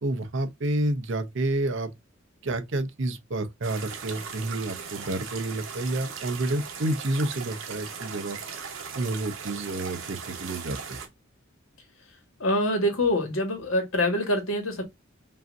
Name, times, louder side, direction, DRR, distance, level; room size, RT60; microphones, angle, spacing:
voice 1, 0.0-1.9 2.4-8.4 8.9-11.0, right 2 dB, 60° right, 0.7 m, -29 dB
sound 1, 3.6-11.1, right 6 dB, 80° right, 1.1 m, -38 dB
voice 2, 12.4-14.8, left 1 dB, 80° left, 1.7 m, -25 dB
5.5 x 2.7 x 2.5 m
head